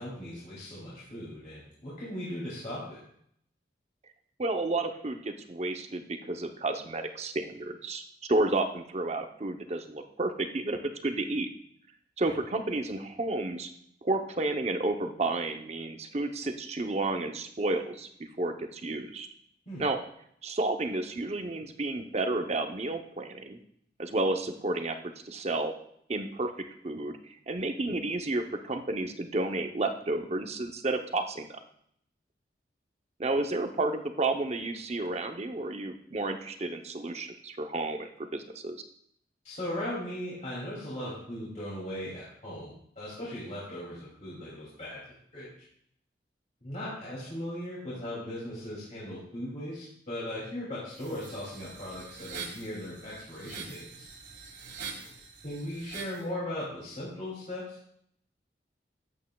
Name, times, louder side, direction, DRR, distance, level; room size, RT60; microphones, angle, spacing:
voice 1, 0.0-3.0 12.2-12.3 19.7-19.8 39.4-45.0 45.3-45.5 46.6-54.0 55.4-57.8, left 1 dB, 40° left, -8 dB, 2.6 m, -38 dB
voice 2, 4.4-11.5 12.2-13.7 14.0-19.3 19.8-20.0 20.4-23.6 24.0-25.0 25.2-25.7 26.1-31.6 33.2-38.8, right 2 dB, 35° right, 6 dB, 0.7 m, -31 dB
sound 1, 50.9-56.2, right 5 dB, 75° right, 1.7 m, -44 dB
12.5 x 8.0 x 2.3 m, 0.68 s
head